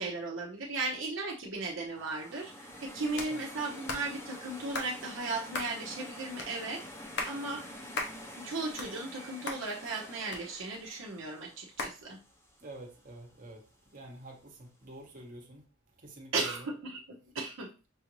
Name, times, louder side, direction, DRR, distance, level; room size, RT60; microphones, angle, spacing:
voice 1, 0.0-2.5 2.8-6.8 7.2-7.6 8.4-12.2 16.3-17.7, right 3 dB, 65° right, -1 dB, 0.8 m, -36 dB
sound 1, 1.9-12.9, equal, 10° left, 0.7 m, -47 dB
voice 2, 2.9-3.4 12.6-13.6 13.9-15.6 16.0-16.7, right 2 dB, 40° right, 2 dB, 1.0 m, -48 dB
sound 2, 3.2-3.3 3.9-4.1 4.7-4.9 5.5-5.7 6.4-6.5 7.0-7.4 8.0-8.2 8.6-9.2 9.5-9.6 10.3-10.9 11.8-12.0, left 3 dB, 55° left, 0.8 m, -36 dB
5.5 x 2.5 x 3.0 m, 0.32 s
head